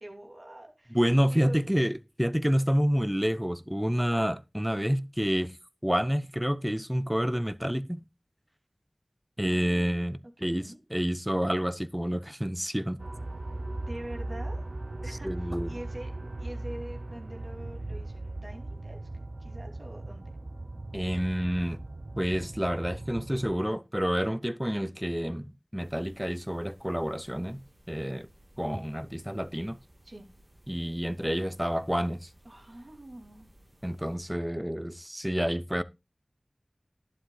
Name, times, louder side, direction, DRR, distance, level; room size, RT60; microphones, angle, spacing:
voice 1, 0.0-1.0 1.3-1.6 9.4-9.9 10.4-10.8 13.9-14.6 15.0-16.1 16.4-19.0 19.4-20.3 30.0-30.3 32.4-33.5, right 1 dB, 60° right, 2.7 m, -44 dB
voice 2, 0.9-5.5 5.8-8.0 9.4-13.0 15.2-15.7 20.9-21.8 22.2-27.6 27.9-28.3 28.6-29.8 30.7-32.3 33.8-35.8, equal, 5° right, 0.6 m, -29 dB
sound 1, 13.0-23.6, right 2 dB, 80° right, 0.5 m, -38 dB
sound 2, 25.8-34.2, right 1 dB, 40° right, 2.3 m, -59 dB
11.5 x 11.0 x 2.3 m
wide cardioid pair, 40°, 0 cm